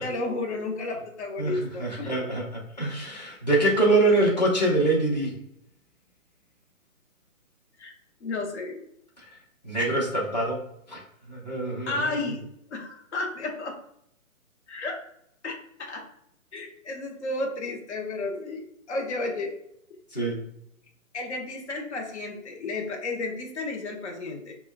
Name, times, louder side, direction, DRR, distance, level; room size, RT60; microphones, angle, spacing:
voice 1, 0.0-2.1 7.8-7.9 8.2-8.8 11.9-13.8 14.7-15.0 15.4-16.0 16.5-19.5 21.1-24.5, left 2 dB, 55° left, 1 dB, 0.7 m, -32 dB
voice 2, 1.4-5.4 9.2-9.4 9.6-10.6 10.9-11.0 11.3-12.1 20.1-20.4, right 2 dB, 30° left, -4 dB, 0.9 m, -25 dB
5.3 x 2.2 x 2.2 m, 0.74 s
hypercardioid pair, 175°, 42 cm